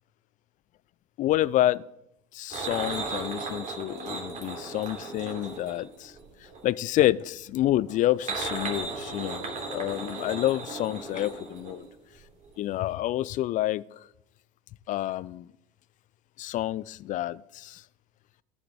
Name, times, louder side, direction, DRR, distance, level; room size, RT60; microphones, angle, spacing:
voice 1, 1.2-1.8 2.3-6.1 6.6-11.8 12.6-13.8 14.9-15.4 16.4-17.8, left 14 dB, 40° left, 20 dB, 0.4 m, -28 dB
sound 1, 2.5-6.7 7.9-12.2 12.4-12.6 12.9-13.0, right 3 dB, 35° right, 2.8 m, -36 dB
13.5 x 5.8 x 4.8 m, 0.81 s
hypercardioid pair, 75°, 21 cm